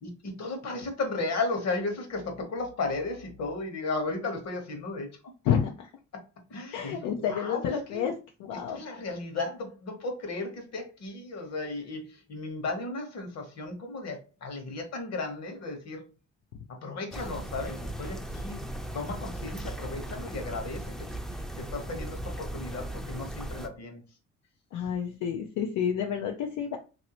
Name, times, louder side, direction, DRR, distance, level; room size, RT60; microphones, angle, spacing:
voice 1, 0.0-5.2 6.1-6.2 6.5-8.0 8.7-16.0 16.8-18.6 18.9-21.1 21.3-24.0, left 3 dB, 60° left, 1.2 m, -35 dB
voice 2, 5.5-5.9 6.7-8.1 8.5-8.8 24.7-26.8, left 8 dB, 85° left, 0.5 m, -29 dB
sound 1, 17.1-23.7, right 1 dB, ahead, 0.5 m, -37 dB
3.1 x 2.7 x 2.9 m
cardioid pair, 90°, 30 cm